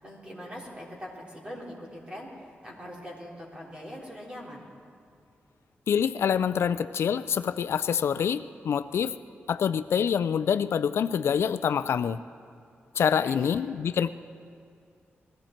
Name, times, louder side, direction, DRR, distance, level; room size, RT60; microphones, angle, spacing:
voice 1, 0.0-4.6 13.2-13.5, equal, 25° right, -4 dB, 3.6 m, -42 dB
voice 2, 5.9-9.2 9.5-12.2 13.0-14.1, left 7 dB, 80° left, 13 dB, 0.4 m, -26 dB
21.5 x 14.5 x 4.4 m, 2.4 s
wide cardioid pair, 115°, 4 cm